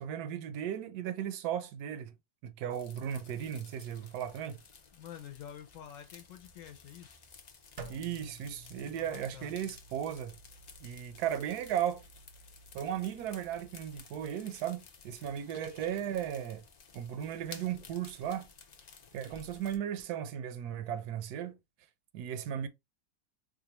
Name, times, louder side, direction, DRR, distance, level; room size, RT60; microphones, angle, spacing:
voice 1, 0.0-2.1 2.4-4.6 7.9-10.4 10.8-12.0 12.7-16.6 16.9-18.5 19.1-21.6 22.1-22.7, right 9 dB, 80° right, 1.1 m, -36 dB
sound 1, 2.7-19.8, left 5 dB, 90° left, 0.3 m, -55 dB
voice 2, 4.9-7.2 8.9-9.6, left 9 dB, 65° left, 0.9 m, -48 dB
sound 2, 7.8-14.0, right 3 dB, 60° right, 0.8 m, -53 dB
4.2 x 2.4 x 2.9 m
omnidirectional pair, 1.7 m